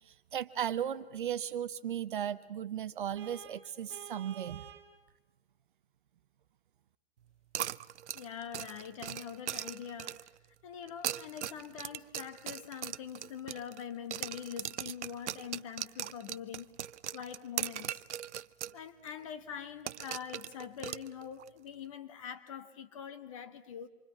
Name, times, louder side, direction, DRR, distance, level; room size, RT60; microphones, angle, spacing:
voice 1, 0.0-4.7, right 9 dB, 50° right, 0.9 m, -36 dB
Vehicle horn car horn honking, 3.2-4.9, right 8 dB, 15° right, 1.3 m, -50 dB
sound 1, 7.5-10.4 10.9-13.8 14.1-18.8 19.1-19.2 19.9-21.5, right 11 dB, 85° right, 0.7 m, -39 dB
voice 2, 8.1-10.2 10.6-16.7 17.1-18.0 18.7-23.9, left 8 dB, 30° left, 1.2 m, -44 dB
27.0 x 24.0 x 5.8 m
hypercardioid pair, 170°, 34 cm